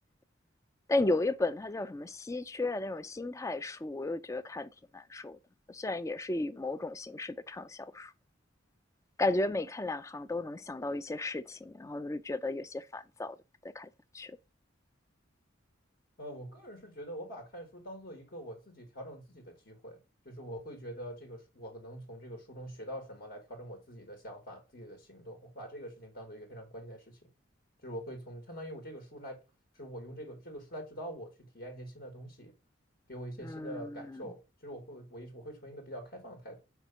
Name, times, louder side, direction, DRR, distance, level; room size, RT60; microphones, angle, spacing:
voice 1, 0.9-5.4 5.7-8.1 9.2-13.4 13.6-13.9 14.1-14.4 33.4-34.3, left 2 dB, 15° left, 0.3 m, -34 dB
voice 2, 16.2-20.0 20.2-27.3 27.8-29.4 29.7-32.5 33.1-36.6, equal, 50° left, 1.4 m, -44 dB
4.9 x 4.5 x 5.6 m
head